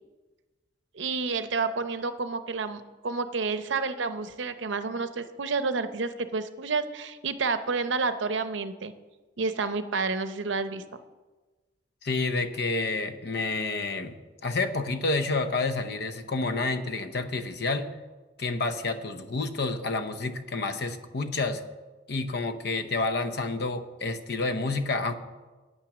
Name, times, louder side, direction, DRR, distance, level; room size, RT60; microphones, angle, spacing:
voice 1, 0.9-8.9 9.4-10.8, right 4 dB, 75° right, 11 dB, 0.7 m, -30 dB
voice 2, 12.0-14.2 14.4-17.9 18.4-21.6 22.1-25.2, left 3 dB, 60° left, 9 dB, 0.8 m, -29 dB
9.3 x 8.9 x 6.1 m, 1.2 s
head